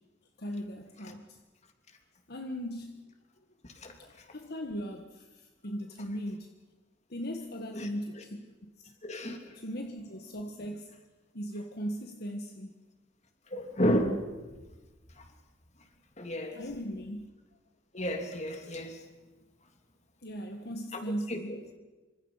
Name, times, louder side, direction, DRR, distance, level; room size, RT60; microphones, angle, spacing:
voice 1, 0.4-1.4 2.3-3.1 4.0-6.5 7.1-8.9 9.5-11.0 11.3-12.7 16.5-17.2 20.2-21.7, equal, 55° left, 4 dB, 1.6 m, -38 dB
voice 2, 9.0-9.5 13.5-14.2 15.2-15.3 16.2-16.6 17.9-19.0 20.9-21.0 21.3-21.6, equal, 35° left, 5 dB, 3.0 m, -31 dB
27.5 x 25.5 x 5.8 m, 1.2 s
head